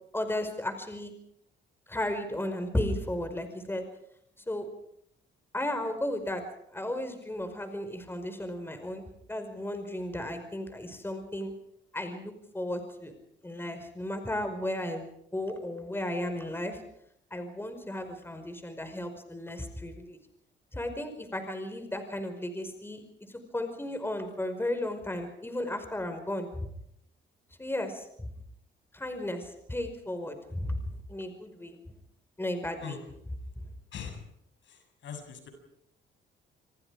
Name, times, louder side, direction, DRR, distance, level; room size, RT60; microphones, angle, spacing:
voice 1, 0.1-1.1 1.9-3.9 4.5-4.7 5.5-6.4 6.7-11.5 11.9-13.1 13.4-15.0 15.3-16.8 17.3-20.2 20.7-26.7 27.6-28.3 28.9-32.0 32.4-33.0 33.6-33.7, left 1 dB, 10° left, 7 dB, 5.2 m, -34 dB
voice 2, 33.9-34.2 34.6-35.5, left 7 dB, 70° left, 6 dB, 7.1 m, -41 dB
27.5 x 25.0 x 5.0 m, 0.71 s
cardioid pair, 90°, 20 cm